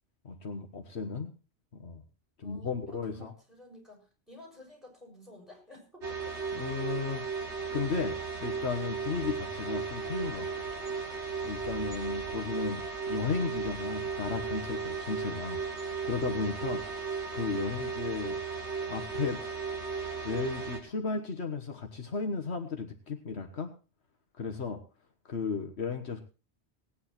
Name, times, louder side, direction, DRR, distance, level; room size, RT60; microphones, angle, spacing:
voice 1, 0.2-1.3 1.7-2.0 2.4-3.3 6.5-7.3 7.7-10.7 11.4-15.6 16.0-16.8 17.3-18.4 18.9-19.4 20.2-23.7 24.4-24.8 25.3-26.2, left 4 dB, 70° left, 4 dB, 1.6 m, -34 dB
voice 2, 2.4-6.1, left 1 dB, ahead, 0 dB, 7.0 m, -52 dB
sound 1, 6.0-20.8, right 5 dB, 85° right, 2.8 m, -35 dB
18.0 x 9.6 x 4.4 m, 0.33 s
omnidirectional pair, 1.2 m